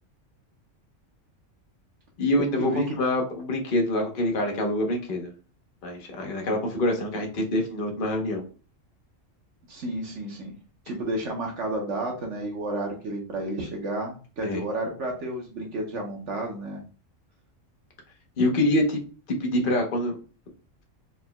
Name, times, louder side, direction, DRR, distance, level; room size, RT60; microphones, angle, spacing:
voice 1, 2.2-5.3 5.8-8.4 14.4-14.6 18.4-19.0 19.3-20.2, left 1 dB, 45° left, 2 dB, 1.0 m, -25 dB
voice 2, 9.7-10.5 10.8-16.8, right 1 dB, 70° right, 1 dB, 1.1 m, -31 dB
4.2 x 3.8 x 2.2 m, 0.38 s
omnidirectional pair, 1.3 m